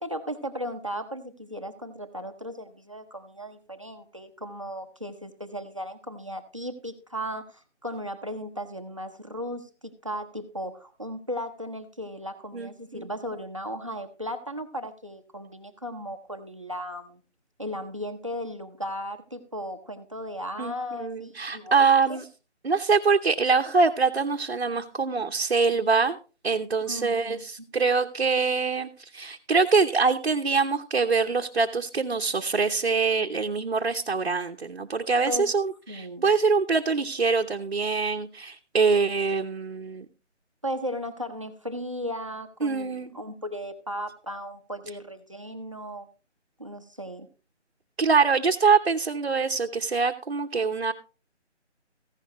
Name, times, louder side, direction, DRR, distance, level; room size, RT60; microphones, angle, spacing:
voice 1, 0.0-17.2 17.6-22.2 26.9-27.4 35.3-35.5 35.9-36.3 40.6-46.1 46.6-47.3, equal, 25° right, 9 dB, 0.8 m, -36 dB
voice 2, 12.5-13.1 20.6-20.7 21.0-22.2 22.6-26.2 26.4-40.1 42.6-43.1 48.0-50.9, right 4 dB, 55° right, 3 dB, 0.9 m, -24 dB
15.0 x 11.0 x 3.0 m, 0.32 s
figure-of-eight pair, 175°, 36 cm